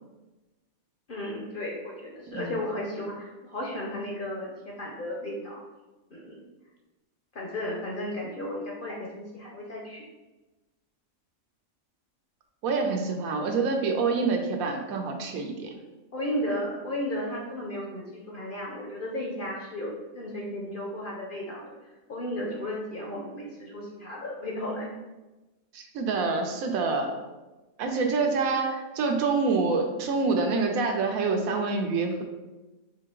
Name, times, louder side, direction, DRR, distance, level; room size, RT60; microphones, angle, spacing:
voice 1, 1.1-5.6 6.1-6.3 7.3-10.0 16.1-21.7 22.1-24.9, left 1 dB, 55° left, -2 dB, 0.6 m, -34 dB
voice 2, 12.6-15.7 25.7-27.1 27.8-32.2, right 4 dB, 80° right, 3 dB, 1.1 m, -26 dB
3.8 x 2.8 x 3.6 m, 1.1 s
omnidirectional pair, 1.5 m